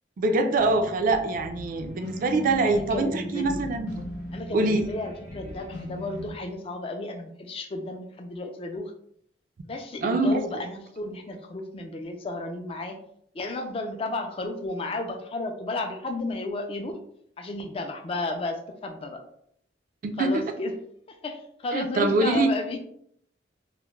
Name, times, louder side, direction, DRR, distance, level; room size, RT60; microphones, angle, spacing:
voice 1, 0.2-3.9 4.5-4.9 10.0-10.4 20.0-20.3 21.7-22.5, right 2 dB, 50° right, 6 dB, 0.3 m, -24 dB
sound 1, 0.6-6.3, left 1 dB, 75° left, 0.7 m, -38 dB
voice 2, 2.6-3.7 4.3-8.9 9.6-13.0 13.3-17.0 17.4-19.2 20.2-20.7 21.1-22.8, left 2 dB, 30° left, 4 dB, 0.3 m, -33 dB
2.3 x 2.0 x 3.0 m, 0.68 s
head